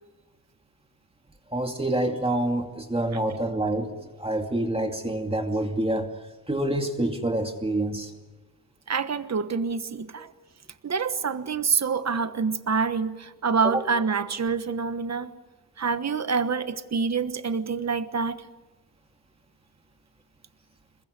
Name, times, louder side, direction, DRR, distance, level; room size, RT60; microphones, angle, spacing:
voice 1, 1.5-6.1 6.5-8.1 13.6-13.8, right 1 dB, 15° right, 3 dB, 2.4 m, -27 dB
voice 2, 8.9-10.3 10.8-15.3 15.8-18.4, right 5 dB, 50° right, 11 dB, 1.3 m, -26 dB
27.5 x 22.5 x 9.6 m, 1.1 s
wide cardioid pair, 145°, 35 cm